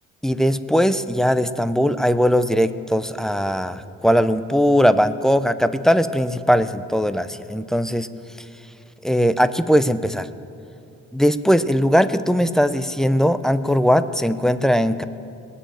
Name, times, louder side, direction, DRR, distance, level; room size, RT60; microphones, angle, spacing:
voice 1, 0.2-8.1 9.0-10.3 11.1-15.1, equal, ahead, 13 dB, 0.5 m, -19 dB
20.0 x 6.9 x 9.1 m, 2.6 s
cardioid pair, 90°, 30 cm